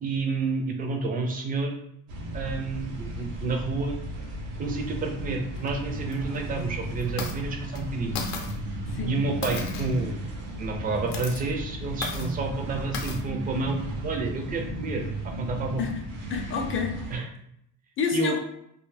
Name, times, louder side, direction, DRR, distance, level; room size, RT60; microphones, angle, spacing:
voice 1, 0.0-1.8 2.3-3.9 4.6-8.1 9.0-10.1 10.6-15.8 17.1-17.2 18.1-18.4, right 3 dB, 25° right, 3 dB, 0.4 m, -30 dB
sound 1, 2.1-17.2, right 1 dB, 80° right, 0.7 m, -35 dB
sound 2, 5.6-5.7 6.1-6.2 7.0-7.4 7.7-7.8 8.2-8.6 9.4-10.0 11.0-11.4 12.0-12.3 12.9-13.2, left 4 dB, 80° left, 0.6 m, -34 dB
voice 2, 16.3-17.2 18.0-18.4, left 6 dB, 35° left, 2 dB, 0.5 m, -29 dB
2.3 x 2.0 x 3.2 m, 0.73 s
cardioid pair, 115°, 39 cm